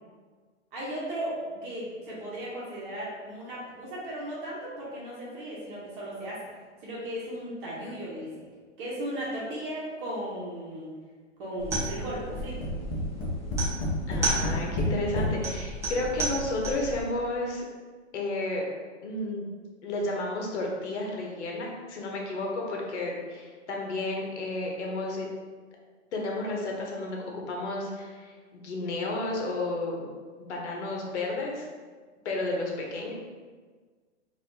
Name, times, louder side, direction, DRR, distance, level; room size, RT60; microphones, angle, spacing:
voice 1, 0.7-6.5 6.8-8.4 8.8-10.9 11.4-12.7, right 1 dB, 45° right, -6 dB, 1.1 m, -36 dB
sound 1, 11.6-17.0, right 2 dB, 10° right, 0.5 m, -33 dB
Tap, 12.3-15.4 16.2-16.3 16.6-16.7, left 1 dB, 25° left, 0.7 m, -29 dB
voice 2, 14.1-17.7 18.1-18.7 19.0-19.5 19.8-25.3 26.1-30.1 30.4-31.7 32.2-33.1, left 2 dB, 65° left, -1 dB, 1.0 m, -32 dB
4.1 x 2.7 x 2.7 m, 1.5 s
hypercardioid pair, 140°, 36 cm